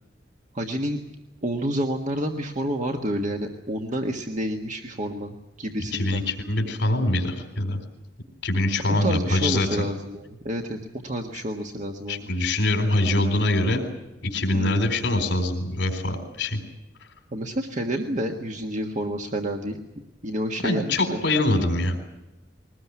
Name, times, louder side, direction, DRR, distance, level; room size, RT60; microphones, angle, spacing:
voice 1, 0.5-1.0 1.4-6.2 8.9-10.8 11.0-12.3 14.5-14.9 17.3-19.8 20.2-21.2, right 1 dB, 45° right, 3 dB, 1.6 m, -29 dB
voice 2, 5.9-7.8 8.4-9.7 12.1-13.8 14.2-16.6 20.6-22.0, left 1 dB, 70° left, 5 dB, 3.9 m, -24 dB
22.0 x 19.5 x 9.5 m, 1.0 s
head